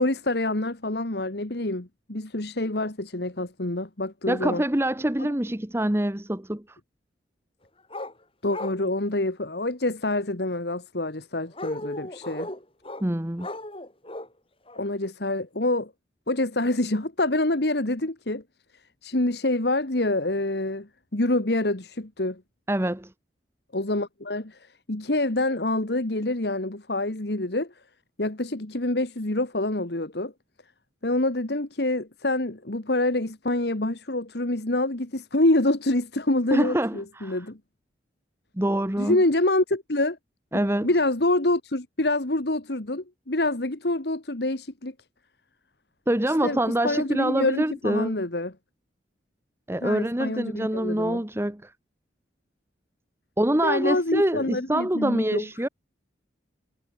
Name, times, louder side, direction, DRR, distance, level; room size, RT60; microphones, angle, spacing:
voice 1, 0.0-4.6 8.4-12.5 14.8-15.9 16.3-18.4 19.0-22.4 23.7-27.7 28.2-30.3 31.0-37.6 39.0-40.2 40.8-44.9 46.3-48.5 49.8-51.2 53.6-55.4, left 2 dB, 60° left, 1.8 m, -26 dB
voice 2, 4.3-6.8 13.0-13.5 22.7-23.1 36.5-37.4 38.6-39.2 40.5-40.9 46.1-48.1 49.7-51.7 53.4-55.7, right 1 dB, 15° right, 1.0 m, -25 dB
sound 1, 7.9-8.1 8.5-8.8 11.5-13.0 13.4-14.3 14.7-14.8, left 1 dB, 30° left, 5.9 m, -35 dB
head